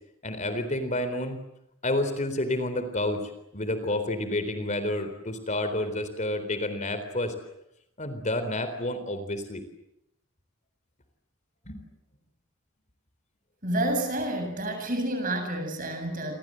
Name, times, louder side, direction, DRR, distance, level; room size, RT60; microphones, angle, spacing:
voice 1, 0.2-1.4 1.8-3.2 3.5-7.3 8.0-9.6 11.7-11.8, left 1 dB, 35° left, 9 dB, 4.0 m, -29 dB
voice 2, 13.6-16.4, right 1 dB, 40° right, 6 dB, 7.9 m, -29 dB
28.5 x 25.5 x 7.8 m, 0.80 s
head